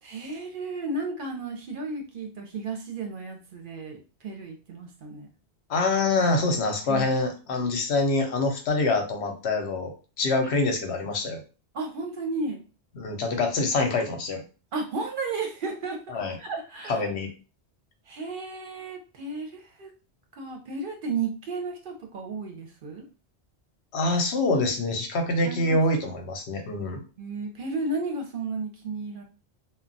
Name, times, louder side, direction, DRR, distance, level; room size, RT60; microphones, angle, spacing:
voice 1, 0.0-5.3 6.9-7.1 11.7-12.6 14.7-17.1 18.1-19.9 20.4-23.0 25.4-25.8 27.2-29.2, right 3 dB, 60° right, 3 dB, 0.7 m, -33 dB
voice 2, 5.7-11.4 12.9-14.4 16.1-16.4 16.9-17.3 23.9-27.0, left 2 dB, 80° left, 4 dB, 1.0 m, -25 dB
2.2 x 2.1 x 3.8 m, 0.33 s
omnidirectional pair, 1.1 m